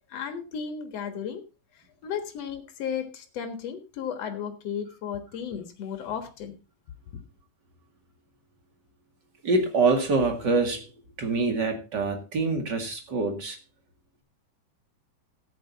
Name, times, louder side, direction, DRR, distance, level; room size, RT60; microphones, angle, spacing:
voice 1, 0.1-1.4 2.0-6.5, left 7 dB, 55° left, 7 dB, 2.0 m, -34 dB
voice 2, 9.4-10.9 11.2-13.6, right 3 dB, 35° right, 5 dB, 1.9 m, -25 dB
14.0 x 9.4 x 4.0 m, 0.29 s
omnidirectional pair, 4.6 m